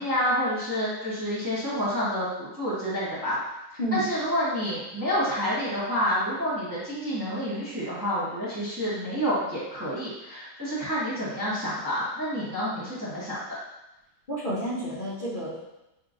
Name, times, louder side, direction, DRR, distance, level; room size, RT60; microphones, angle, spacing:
voice 1, 0.0-3.4 3.9-13.4, equal, 15° right, -9 dB, 1.0 m, -28 dB
voice 2, 14.3-15.7, equal, 40° left, -11 dB, 0.8 m, -30 dB
6.6 x 2.2 x 2.5 m, 0.93 s
omnidirectional pair, 1.8 m